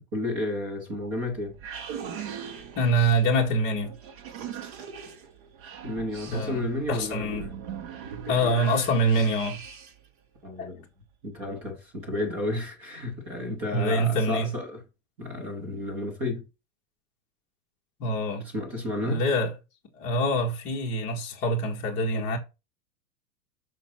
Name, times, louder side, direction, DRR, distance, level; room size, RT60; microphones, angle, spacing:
voice 1, 0.1-1.6 5.8-7.5 10.4-10.8 11.2-14.8 15.2-16.5 18.5-19.2, left 1 dB, 10° right, 0.4 m, -32 dB
sound 1, 1.0-10.1, right 8 dB, 35° right, 0.9 m, -40 dB
voice 2, 2.7-3.9 6.3-7.5 8.3-9.6 10.6-10.7 13.7-14.5 18.0-18.5 19.0-19.5 19.9-22.4, right 1 dB, 25° left, 1.6 m, -25 dB
5.9 x 4.0 x 6.0 m
supercardioid pair, 175°, 45 cm